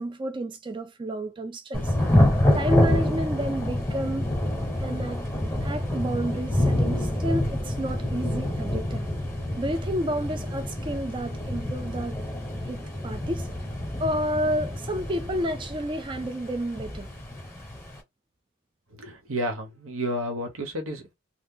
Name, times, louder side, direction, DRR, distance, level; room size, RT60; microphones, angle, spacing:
voice 1, 0.0-2.0 2.5-4.3 4.8-5.2 5.6-9.1 9.6-12.2 12.7-13.5 14.0-17.1, equal, 25° right, 0.3 m, -30 dB
Thunder / Rain, 1.7-18.0, left 1 dB, 10° left, 1.0 m, -27 dB
voice 2, 18.9-21.1, equal, 85° right, 1.1 m, -31 dB
2.8 x 2.2 x 3.7 m
head